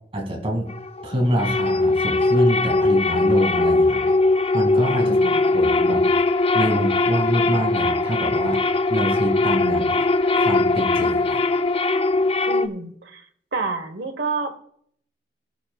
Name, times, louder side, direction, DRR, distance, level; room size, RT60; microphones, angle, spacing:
voice 1, 0.1-0.7 1.0-4.1 4.5-6.1 6.5-10.0 10.4-11.4, equal, 35° right, 2 dB, 2.3 m, -26 dB
sound 1, 0.7-12.7, left 3 dB, 35° left, 0.4 m, -20 dB
voice 2, 5.0-5.5 12.4-13.2 13.5-14.6, right 3 dB, 70° right, 7 dB, 1.3 m, -29 dB
19.5 x 8.9 x 2.4 m, 0.67 s
head